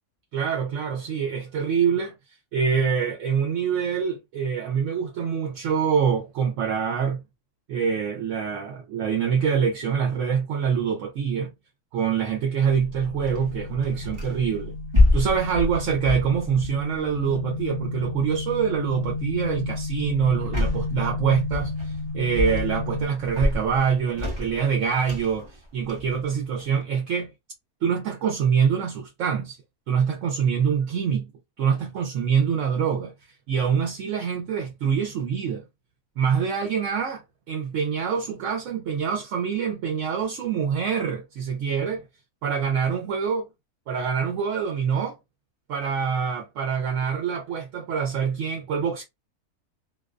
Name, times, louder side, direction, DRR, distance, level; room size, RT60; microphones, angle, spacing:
voice 1, 0.3-2.2 2.5-7.2 7.7-11.5 11.9-14.7 15.1-27.3 27.8-29.6 29.9-31.3 31.6-33.1 33.5-35.6 36.2-42.0 42.4-43.5 43.9-45.2 45.7-49.0, right 7 dB, 65° right, 0.9 m, -25 dB
sound 1, 12.7-23.1, left 3 dB, 70° left, 0.9 m, -32 dB
sound 2, 13.2-14.5 14.9-17.3 18.4-18.6 19.0-19.3 20.4-21.0 21.5-22.1 22.3-22.9 23.2-26.8, left 2 dB, 25° right, 0.6 m, -26 dB
2.5 x 2.1 x 2.4 m
omnidirectional pair, 1.6 m